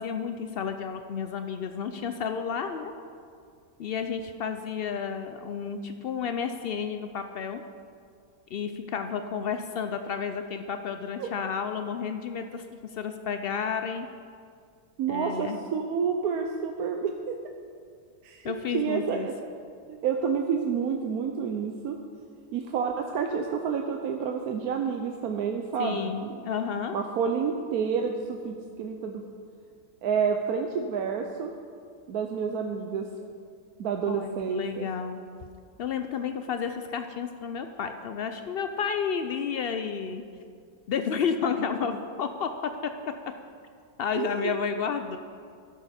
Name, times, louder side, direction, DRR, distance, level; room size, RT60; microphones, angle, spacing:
voice 1, 0.0-2.9 3.8-7.6 8.5-12.6 12.9-14.1 15.1-15.6 18.4-19.3 25.8-27.0 34.1-35.2 35.8-40.2 40.9-42.9 44.0-45.2, left 6 dB, 90° left, 7 dB, 0.5 m, -31 dB
voice 2, 15.0-17.4 18.2-19.3 19.9-22.0 22.5-26.4 26.9-29.2 30.0-31.5 32.1-33.1 33.8-34.9 44.1-44.5, right 6 dB, 75° right, 3 dB, 1.2 m, -29 dB
12.0 x 11.5 x 4.3 m, 2.2 s
omnidirectional pair, 1.6 m